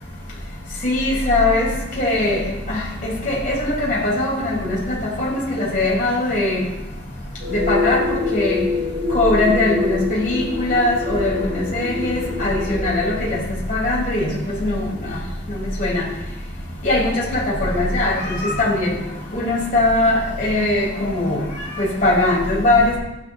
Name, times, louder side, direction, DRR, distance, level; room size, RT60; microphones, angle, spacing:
voice 1, 0.8-1.7 2.0-2.4 2.7-2.8 3.3-4.8 5.0-6.6 7.5-8.0 8.3-8.6 9.1-13.4 13.7-14.3 14.6-14.8 15.8-16.0 16.8-18.9 19.3-21.4 21.8-23.0, left 2 dB, 45° left, -5 dB, 5.2 m, -20 dB
sound 1, 7.4-13.2, left 4 dB, 65° right, 3.7 m, -26 dB
16.0 x 12.5 x 3.2 m, 0.96 s
head